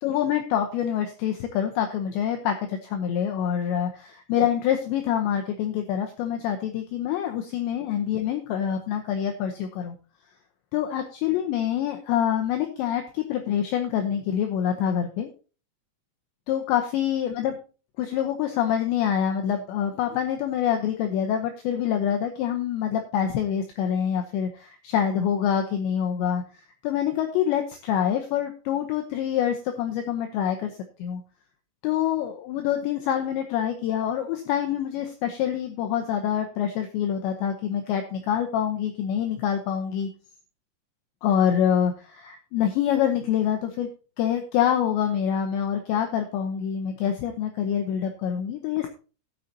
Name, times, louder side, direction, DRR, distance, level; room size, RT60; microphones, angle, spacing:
voice 1, 0.0-10.0 10.7-15.3 16.5-17.6 18.0-26.4 26.8-31.2 31.8-40.1 41.2-43.9 44.2-48.9, left 9 dB, 80° left, 4 dB, 2.6 m, -26 dB
18.0 x 6.5 x 2.8 m, 0.36 s
omnidirectional pair, 6.0 m